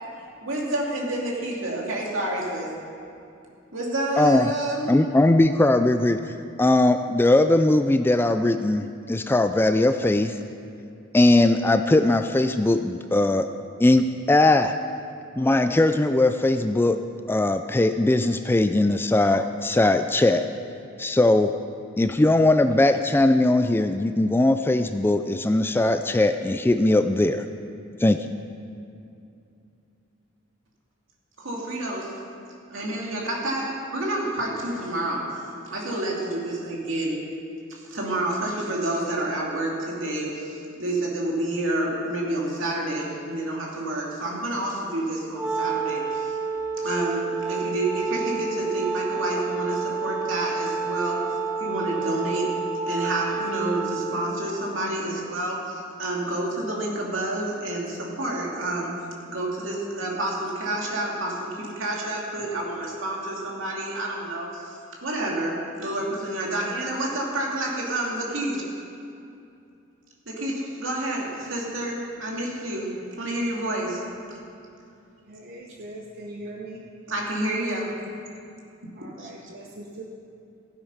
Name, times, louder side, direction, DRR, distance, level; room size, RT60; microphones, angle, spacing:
voice 1, 0.4-2.7 3.7-5.2 31.4-32.1 32.7-35.4 35.7-37.3 37.7-46.4 46.8-51.2 51.6-52.5 52.9-59.0 59.2-68.7 70.3-74.0 77.1-78.0 79.2-79.3, right 1 dB, 70° right, -2 dB, 2.6 m, -29 dB
voice 2, 4.2-4.5 4.9-10.4 11.1-13.5 13.8-14.8 15.4-17.0 17.3-20.5 21.0-21.5 22.0-27.4 28.0-28.3, left 2 dB, 10° left, 9 dB, 0.3 m, -20 dB
Wind instrument woodwind instrument, 45.3-54.5, right 4 dB, 10° right, 1.5 m, -29 dB
voice 3, 75.3-76.8 79.0-80.0, right 1 dB, 50° right, -1 dB, 1.0 m, -40 dB
15.0 x 9.0 x 5.7 m, 2.6 s
head